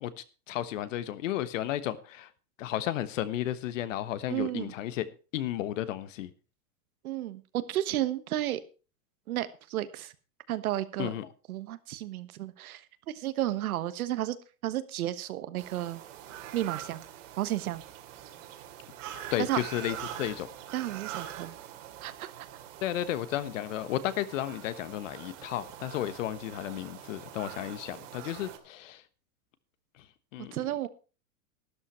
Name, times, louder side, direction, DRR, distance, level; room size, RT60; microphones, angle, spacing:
voice 1, 0.0-2.3 2.6-5.1 5.3-6.3 11.0-11.3 19.3-20.5 22.8-29.0 30.0-30.1 30.3-30.6, left 12 dB, 55° left, 15 dB, 1.3 m, -33 dB
voice 2, 4.3-4.7 7.0-8.6 9.3-10.1 10.5-11.1 11.5-14.4 14.6-16.0 16.5-17.0 17.4-17.8 19.0-19.6 20.7-21.5 22.0-22.5 30.4-30.9, right 14 dB, 70° right, 13 dB, 1.4 m, -32 dB
sound 1, 15.6-28.6, right 11 dB, 55° right, 2.4 m, -44 dB
12.5 x 11.5 x 4.5 m, 0.34 s
supercardioid pair, 165°, 45 cm